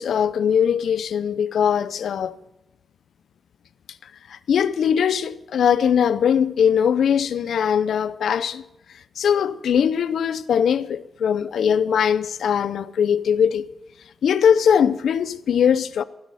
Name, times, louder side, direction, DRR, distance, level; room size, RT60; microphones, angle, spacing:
voice 1, 0.0-2.4 4.3-8.6 9.2-13.7 14.2-16.0, left 8 dB, 80° left, 0.6 m, -20 dB
15.0 x 12.5 x 4.1 m
cardioid pair, 65°, 0 cm